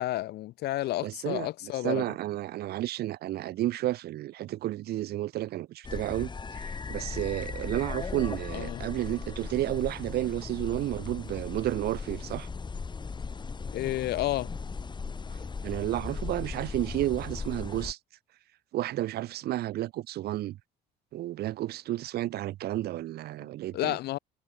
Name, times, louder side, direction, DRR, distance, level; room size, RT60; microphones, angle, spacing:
voice 1, 0.0-2.0 8.5-8.8 13.7-14.5 23.7-24.2, left 15 dB, 75° left, 1.5 m, -31 dB
voice 2, 1.0-12.5 15.6-18.0 18.7-20.6 21.1-24.0, right 14 dB, 70° right, 1.4 m, -32 dB
sound 1, 5.8-17.9, left 4 dB, 25° left, 5.6 m, -37 dB
cardioid pair, 110°, 17 cm